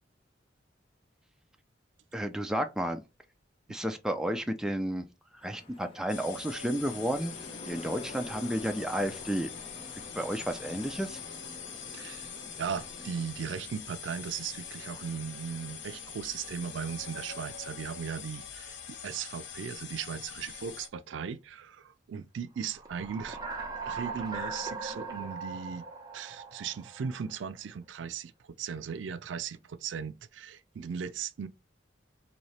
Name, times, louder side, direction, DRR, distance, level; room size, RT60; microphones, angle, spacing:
voice 1, 2.1-3.0 3.7-5.0 5.4-7.3 7.7-9.5 10.1-11.2, equal, 5° right, 0.4 m, -32 dB
sound 1, 5.4-17.5, left 2 dB, 30° left, 1.0 m, -49 dB
sound 2, 6.1-20.9, left 7 dB, 65° left, 0.6 m, -44 dB
voice 2, 11.9-23.4 23.8-25.8 26.1-28.3 28.6-31.5, right 7 dB, 75° right, 0.4 m, -37 dB
sound 3, 22.6-27.3, right 4 dB, 20° right, 0.9 m, -39 dB
4.2 x 2.7 x 3.2 m
head